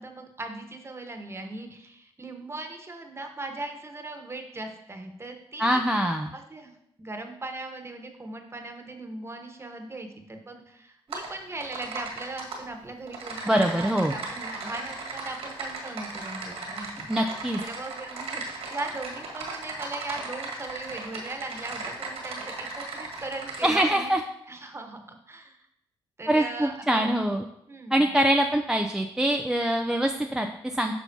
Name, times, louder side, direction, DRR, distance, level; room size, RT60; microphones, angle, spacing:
voice 1, 0.0-5.8 6.3-17.1 17.6-24.1 24.5-25.6 26.2-27.2 27.7-28.1, right 2 dB, 25° right, 4 dB, 1.2 m, -39 dB
voice 2, 5.6-6.3 13.4-14.1 17.1-17.6 23.6-24.2 26.3-27.5 27.9-30.9, right 1 dB, 5° right, 4 dB, 0.5 m, -24 dB
Typing, 11.1-11.3 11.6-12.6 13.1-23.8, right 3 dB, 75° right, 1.7 m, -37 dB
9.1 x 5.6 x 2.8 m, 0.78 s
cardioid pair, 65°, 10 cm